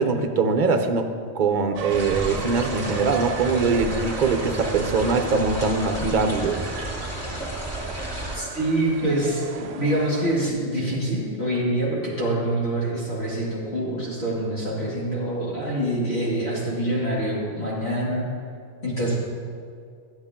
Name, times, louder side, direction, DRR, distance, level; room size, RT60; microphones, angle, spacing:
voice 1, 0.0-6.7, right 4 dB, 45° right, 6 dB, 0.8 m, -22 dB
sound 1, 1.7-10.5, right 7 dB, 80° right, 0.3 m, -36 dB
sound 2, 1.9-8.4, equal, 20° right, 2.1 m, -32 dB
voice 2, 8.3-18.2 18.8-19.1, right 1 dB, 60° left, -8 dB, 2.6 m, -25 dB
12.5 x 9.7 x 3.7 m, 2.2 s
omnidirectional pair, 1.2 m